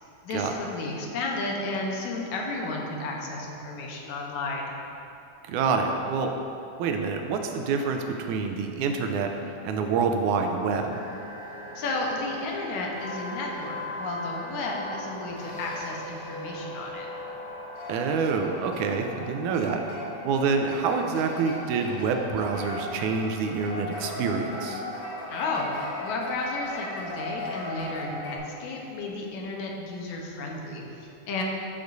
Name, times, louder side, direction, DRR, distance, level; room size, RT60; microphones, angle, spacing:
voice 1, 0.2-4.7 11.8-17.1 25.3-31.4, left 2 dB, 70° left, -1 dB, 2.2 m, -33 dB
voice 2, 5.5-6.4 6.8-9.3 9.6-11.0 17.9-19.8 20.3-24.8, right 5 dB, 80° right, 4 dB, 2.0 m, -27 dB
sound 1, 10.9-28.4, left 1 dB, 55° left, 3.2 m, -38 dB
13.0 x 7.1 x 2.6 m, 2.8 s
omnidirectional pair, 3.7 m